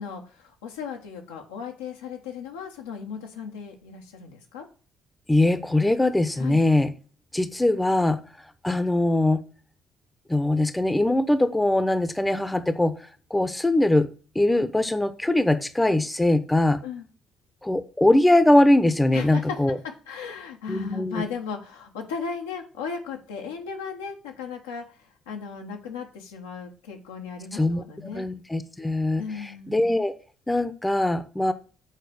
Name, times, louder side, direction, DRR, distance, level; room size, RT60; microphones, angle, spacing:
voice 1, 0.0-4.7 6.4-6.6 16.8-17.0 19.1-19.6 20.1-24.8 25.3-28.2 29.2-29.9, left 6 dB, 80° left, 1 dB, 1.3 m, -36 dB
voice 2, 5.3-6.9 7.3-8.2 8.6-9.4 10.3-12.9 13.3-14.1 14.3-16.8 17.6-19.8 20.7-21.2 27.5-27.8 28.1-30.1 30.5-31.5, left 1 dB, 10° left, 11 dB, 0.9 m, -21 dB
7.3 x 4.2 x 6.4 m, 0.37 s
hypercardioid pair, 50°, 0 cm